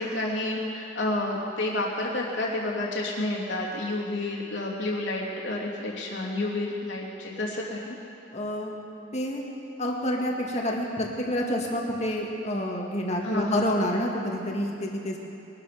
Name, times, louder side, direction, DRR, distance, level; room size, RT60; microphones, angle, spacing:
voice 1, 0.0-8.0 13.2-13.7, left 2 dB, 70° left, -3 dB, 2.9 m, -30 dB
voice 2, 8.3-8.8 9.1-9.4 9.8-15.2, left 1 dB, 35° left, 0 dB, 2.0 m, -28 dB
22.0 x 12.5 x 5.1 m, 2.8 s
head